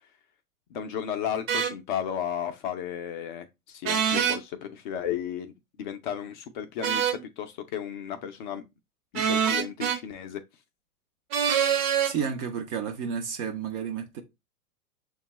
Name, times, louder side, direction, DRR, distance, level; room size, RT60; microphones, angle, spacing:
voice 1, 0.7-5.5 5.8-8.6 9.1-10.4, left 9 dB, 35° left, 0.5 m, -34 dB
sound 1, 1.5-1.7 3.8-4.4 6.8-7.2 9.1-10.0 11.3-12.1, right 8 dB, 40° right, 1.0 m, -25 dB
voice 2, 12.0-14.2, right 7 dB, 25° right, 0.5 m, -31 dB
6.9 x 2.3 x 2.9 m
figure-of-eight pair, 105°, 45 cm